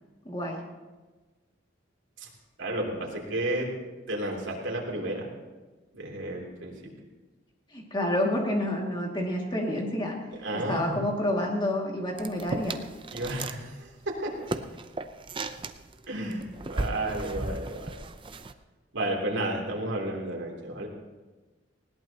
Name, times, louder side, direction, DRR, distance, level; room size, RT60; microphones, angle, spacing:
voice 1, 0.3-0.6 7.7-10.2 10.5-12.8, left 1 dB, 25° left, -1 dB, 2.3 m, -29 dB
voice 2, 2.6-3.7 4.1-5.3 5.9-6.7 10.4-11.0 13.1-13.6 14.1-14.3 16.1-16.4 16.7-17.9 18.9-20.9, right 1 dB, 80° right, -1 dB, 3.2 m, -31 dB
sound 1, 12.2-13.6 13.9-18.5, right 2 dB, 25° right, 0.6 m, -36 dB
19.5 x 17.0 x 3.0 m, 1.3 s
head